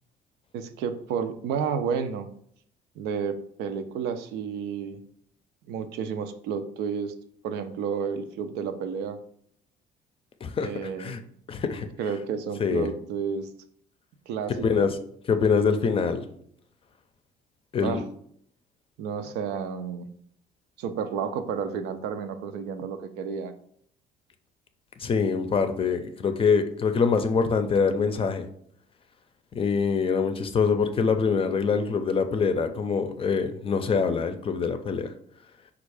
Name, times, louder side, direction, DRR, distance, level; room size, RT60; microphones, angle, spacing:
voice 1, 0.5-2.3 3.0-5.0 5.7-7.1 7.4-9.2 10.6-11.2 12.0-13.5 14.3-14.9 17.8-18.0 19.0-20.1 20.8-23.5, right 6 dB, 85° right, 9 dB, 0.5 m, -31 dB
voice 2, 11.5-11.9 12.6-12.9 14.6-15.0 15.3-16.2 17.7-18.0 25.0-28.5 29.5-35.1, left 5 dB, 35° left, 8 dB, 0.5 m, -24 dB
4.4 x 2.4 x 4.7 m, 0.65 s
cardioid pair, 110°, 17 cm